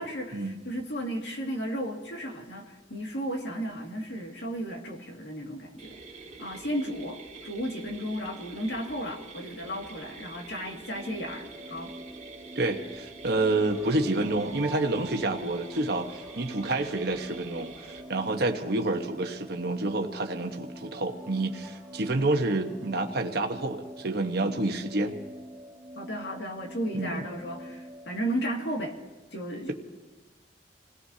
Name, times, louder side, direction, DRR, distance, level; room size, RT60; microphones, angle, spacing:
voice 1, 0.0-5.9 6.4-7.2 7.4-11.9 26.0-28.9 29.3-29.7, equal, 70° left, 1 dB, 2.2 m, -34 dB
sound 1, 5.8-18.0, right 4 dB, 40° right, 1.6 m, -46 dB
sound 2, 10.9-28.2, equal, 20° right, 1.2 m, -45 dB
voice 2, 12.5-25.1 26.9-27.3, right 2 dB, 60° right, 4 dB, 1.2 m, -28 dB
sound 3, 13.6-23.7, right 2 dB, ahead, 2.3 m, -52 dB
28.0 x 17.5 x 2.8 m, 1.2 s
head